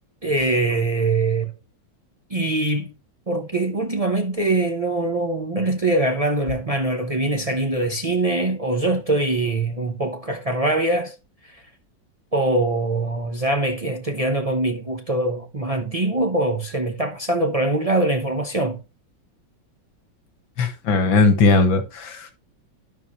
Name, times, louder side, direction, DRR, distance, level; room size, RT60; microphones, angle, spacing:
voice 1, 0.2-1.5 2.3-2.9 3.3-11.1 11.4-11.6 12.3-18.8, right 2 dB, 55° right, 0.4 m, -23 dB
voice 2, 20.6-22.3, left 3 dB, 85° left, 2.2 m, -18 dB
12.5 x 5.5 x 3.1 m
omnidirectional pair, 2.0 m